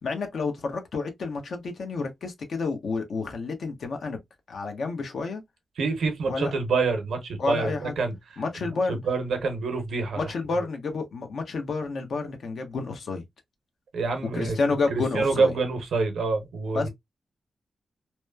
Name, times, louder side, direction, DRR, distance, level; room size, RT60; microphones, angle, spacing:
voice 1, 0.0-4.2 4.5-5.4 6.3-6.5 7.4-7.9 8.4-9.0 10.2-13.2 14.3-15.5 16.7-16.9, left 4 dB, 75° left, 0.8 m, -30 dB
voice 2, 5.8-8.2 8.6-10.2 13.9-14.6 14.9-16.9, right 4 dB, 90° right, 0.7 m, -26 dB
2.9 x 2.1 x 2.2 m
cardioid pair, 80°, 0 cm